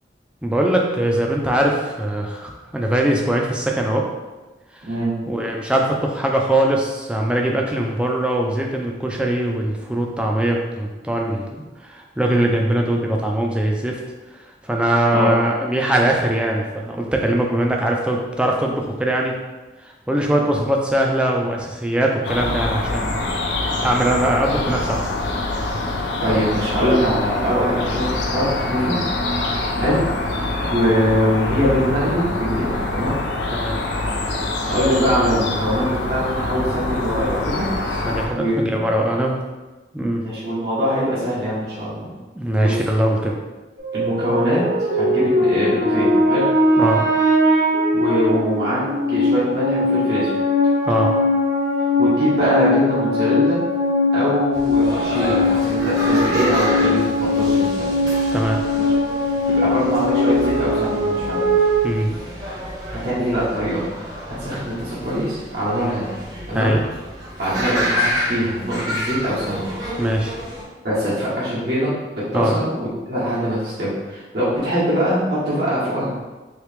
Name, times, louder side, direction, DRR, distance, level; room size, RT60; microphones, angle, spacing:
voice 1, 0.4-4.1 4.7-4.9 5.3-14.0 14.3-19.4 19.8-23.1 23.8-25.1 29.4-29.6 30.4-30.6 33.5-33.8 38.0-39.4 39.9-40.2 42.4-43.4 46.8-47.0 50.8-51.1 58.3-58.6 61.8-62.2 65.7-66.0 66.5-66.8 70.0-70.4 72.3-72.6, right 1 dB, 5° right, 0 dB, 0.3 m, -21 dB
voice 2, 4.9-5.2 15.1-15.3 25.7-25.8 26.2-29.0 29.8-30.0 30.7-33.1 34.7-37.8 38.3-39.0 40.2-42.1 42.6-42.8 43.9-46.4 47.9-48.8 49.1-50.3 52.0-53.6 54.1-57.9 58.7-58.8 59.5-61.4 62.9-63.8 64.2-66.2 66.5-66.7 67.4-69.7 70.8-76.1, equal, 70° right, -10 dB, 1.2 m, -22 dB
sound 1, 22.2-38.3, left 2 dB, 90° left, 0.5 m, -25 dB
sound 2, 43.8-61.8, left 1 dB, 90° right, 1.1 m, -20 dB
sound 3, 54.5-70.6, equal, 20° right, 0.7 m, -29 dB
3.1 x 2.8 x 3.3 m, 1.2 s
head